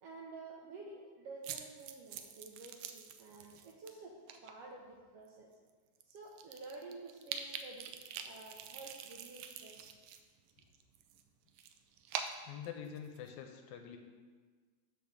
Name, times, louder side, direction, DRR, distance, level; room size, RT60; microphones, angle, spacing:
voice 1, 0.0-4.1 4.4-5.5 6.1-9.9, right 3 dB, 70° right, -1 dB, 1.5 m, -51 dB
sound 1, 1.4-3.9 4.3-4.5 5.2-5.3 5.7-5.8 6.0-10.2 10.5-13.3, right 8 dB, 85° right, 1.4 m, -45 dB
voice 2, 12.4-14.0, left 8 dB, 80° left, 4 dB, 1.9 m, -46 dB
7.8 x 3.5 x 6.5 m, 1.5 s
omnidirectional pair, 3.4 m